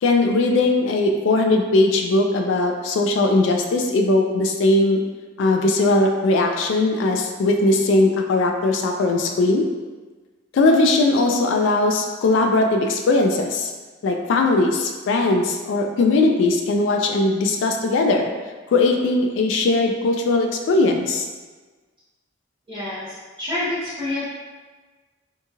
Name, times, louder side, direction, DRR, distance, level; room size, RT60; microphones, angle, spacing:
voice 1, 0.0-5.0 5.4-9.7 10.5-13.7 14.0-18.3 18.7-21.3, left 2 dB, 70° left, 2 dB, 0.3 m, -19 dB
voice 2, 22.7-24.2, left 1 dB, 25° right, -14 dB, 0.9 m, -28 dB
2.8 x 2.7 x 2.3 m, 1.3 s
head